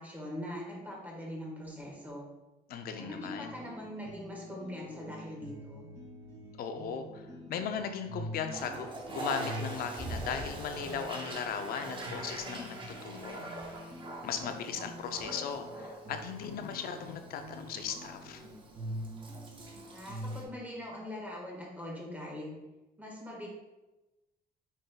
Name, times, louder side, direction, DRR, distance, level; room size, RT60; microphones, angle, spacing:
voice 1, 0.0-2.3 2.9-5.9 19.8-22.5 23.0-23.5, left 1 dB, 10° right, -3 dB, 1.5 m, -42 dB
voice 2, 2.7-3.5 6.6-13.5 14.2-18.4, left 7 dB, 65° left, 7 dB, 0.5 m, -37 dB
sound 1, 2.9-20.4, equal, 70° right, 1.5 m, -46 dB
Toilet flush, 8.5-20.4, right 2 dB, 30° right, 0.8 m, -43 dB
5.2 x 3.9 x 2.2 m, 1.0 s
cardioid pair, 110°, 17 cm